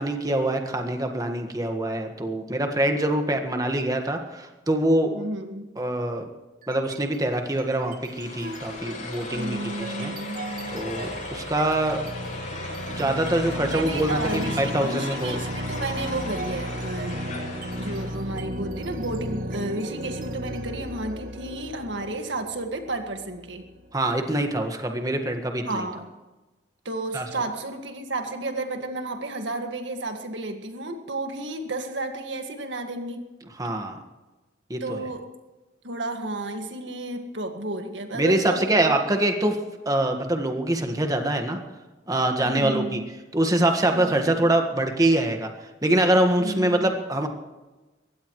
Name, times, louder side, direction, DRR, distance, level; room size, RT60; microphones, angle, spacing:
voice 1, 0.0-5.2 5.8-6.2 6.7-9.6 10.0-10.1 10.7-12.0 13.0-15.4 23.9-25.8 27.1-27.2 33.6-34.0 34.7-35.0 38.1-39.6 39.8-41.6 42.1-43.0 43.3-45.5 45.8-47.3, right 1 dB, 20° right, 4 dB, 1.6 m, -24 dB
voice 2, 5.1-5.7 9.3-10.9 13.7-17.3 17.8-23.7 25.6-26.1 26.9-33.4 34.8-35.4 35.8-39.0 42.4-43.1 43.9-44.5 46.4-46.9, right 2 dB, 80° right, 5 dB, 1.9 m, -32 dB
sound 1, 6.6-7.2 7.5-24.1, equal, 50° right, 1.6 m, -35 dB
sound 2, 8.0-18.3, left 2 dB, 40° left, 7.0 m, -37 dB
22.5 x 16.5 x 3.2 m, 1.1 s
head